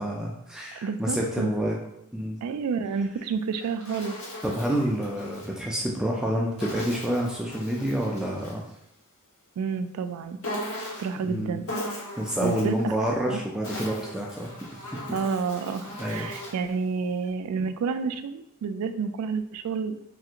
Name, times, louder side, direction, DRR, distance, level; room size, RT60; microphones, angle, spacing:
voice 1, 0.0-1.8 2.1-2.4 4.4-8.6 11.2-11.6 12.2-14.8 16.0-16.3, equal, 5° right, -2 dB, 0.3 m, -28 dB
voice 2, 0.8-1.5 2.4-4.1 9.6-10.4 11.0-11.7 12.4-12.9 13.3-13.4 15.1-20.0, right 5 dB, 90° right, 14 dB, 0.3 m, -29 dB
Insect, 3.3-5.5 6.6-8.7 10.4-11.2 11.7-12.8 13.4-16.7, left 1 dB, 75° left, 0.9 m, -38 dB
3.3 x 2.4 x 2.8 m, 0.80 s
head